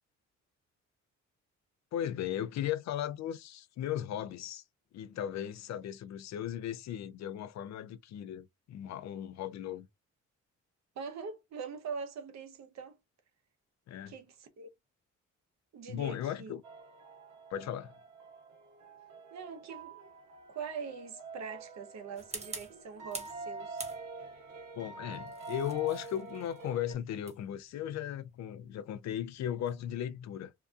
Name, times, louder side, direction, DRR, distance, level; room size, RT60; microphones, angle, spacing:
voice 1, 1.9-4.6 4.9-9.9 13.9-14.1 15.9-16.6 17.5-17.9 24.8-30.5, left 10 dB, 65° left, 0.5 m, -37 dB
voice 2, 11.0-13.0 14.1-14.7 15.7-16.5 19.3-20.1 20.5-23.8, right 5 dB, 60° right, 0.8 m, -43 dB
sound 1, 16.6-26.9, right 3 dB, 90° right, 0.9 m, -46 dB
sound 2, 22.2-23.4 23.8-24.4 25.1-29.9, right 3 dB, 20° right, 0.9 m, -47 dB
2.7 x 2.2 x 2.4 m
cardioid pair, 90°, 30 cm